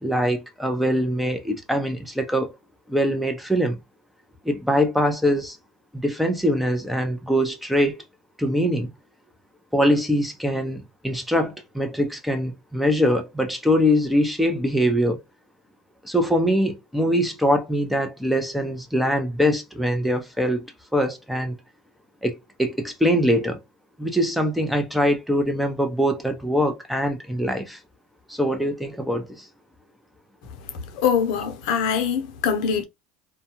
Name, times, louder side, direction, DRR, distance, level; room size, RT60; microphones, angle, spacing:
voice 1, 0.0-2.5 2.9-3.8 4.4-5.6 5.9-8.0 8.4-8.9 9.7-15.2 16.0-20.6 20.9-21.5 22.2-23.6 24.0-27.8 28.3-29.5, equal, ahead, 0.6 m, -23 dB
voice 2, 30.9-32.8, left 7 dB, 75° left, 0.6 m, -23 dB
2.3 x 2.2 x 2.9 m
supercardioid pair, 100°, 4 cm